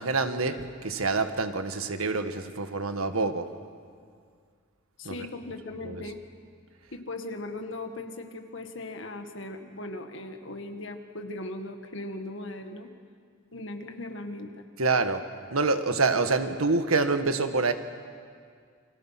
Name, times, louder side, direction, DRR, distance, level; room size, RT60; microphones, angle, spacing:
voice 1, 0.0-3.5 5.0-5.1 5.8-6.0 14.8-15.2 15.5-17.7, right 3 dB, 90° right, 8 dB, 1.5 m, -26 dB
voice 2, 5.0-6.2 6.9-12.9 13.5-14.7, left 2 dB, 60° left, 5 dB, 2.0 m, -38 dB
29.5 x 24.5 x 5.9 m, 2.1 s
head